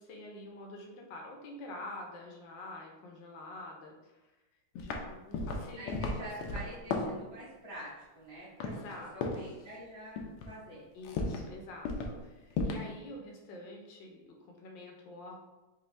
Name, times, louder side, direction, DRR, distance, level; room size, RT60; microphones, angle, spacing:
voice 1, 0.0-4.2 4.7-5.9 6.2-6.7 8.6-9.4 10.9-15.4, left 2 dB, 65° left, 0 dB, 1.3 m, -47 dB
sound 1, 4.8-5.1 5.3-7.2 8.6-9.0 9.2-9.5 10.2-10.5 11.0-11.5 11.8-12.2 12.5-12.9, left 3 dB, 85° left, 1.5 m, -34 dB
voice 2, 5.8-8.7 9.1-10.9, right 1 dB, 20° right, -13 dB, 1.1 m, -46 dB
5.2 x 2.7 x 3.3 m, 1.1 s
omnidirectional pair, 2.4 m